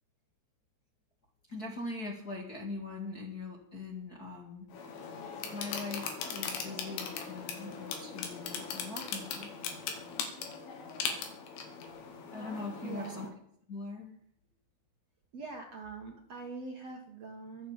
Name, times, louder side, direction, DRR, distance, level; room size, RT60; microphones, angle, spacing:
voice 1, 1.5-4.8 5.5-9.5 12.3-13.3 13.7-14.2, left 3 dB, 40° left, -1 dB, 1.3 m, -41 dB
sound 1, 4.7-13.3, left 6 dB, 75° left, 4.7 m, -39 dB
voice 2, 12.8-13.3 15.3-17.7, right 4 dB, 75° right, 1 dB, 1.4 m, -43 dB
23.5 x 8.2 x 7.3 m, 0.67 s
omnidirectional pair, 5.7 m